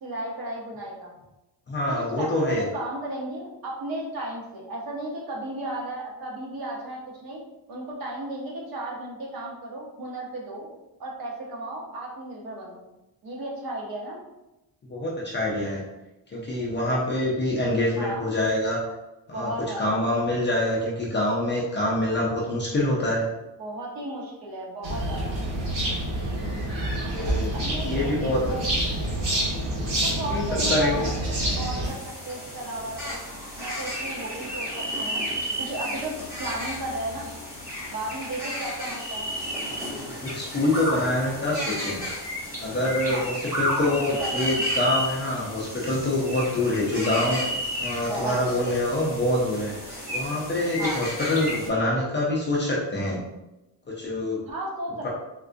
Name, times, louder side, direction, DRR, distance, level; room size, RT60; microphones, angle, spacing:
voice 1, 0.0-1.1 1.9-10.7 11.0-12.9 13.2-14.2 18.0-18.3 19.3-20.0 23.6-25.4 27.5-28.6 30.0-33.3 33.6-35.2 35.6-37.3 37.9-39.3 43.1-43.3 43.8-44.5 48.1-48.7 50.8-51.0 54.5-55.1, right 1 dB, 50° right, -2 dB, 0.8 m, -34 dB
voice 2, 1.7-2.6 14.9-15.8 16.3-18.8 19.3-19.5 19.8-23.3 27.1-27.5 27.8-28.5 30.3-31.1 39.9-42.1 42.6-47.4 47.8-53.2 54.0-54.4 55.0-55.1, left 1 dB, 25° left, -5 dB, 0.4 m, -26 dB
sound 1, 24.8-31.9, right 1 dB, 85° right, 1.1 m, -27 dB
sound 2, 31.8-51.7, equal, 5° right, 0.8 m, -32 dB
3.6 x 2.3 x 2.4 m, 0.98 s
cardioid pair, 175°, 45 cm